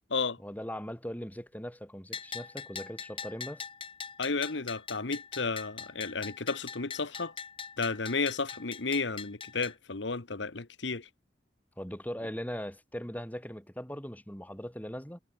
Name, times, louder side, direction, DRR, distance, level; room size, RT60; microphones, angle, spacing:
voice 1, 0.4-3.7 11.8-15.2, equal, 10° left, 4.0 m, -40 dB
Bell, 2.1-9.7, left 6 dB, 30° left, 4.0 m, -42 dB
voice 2, 4.2-7.3 7.8-11.1, left 4 dB, 80° left, 1.3 m, -32 dB
head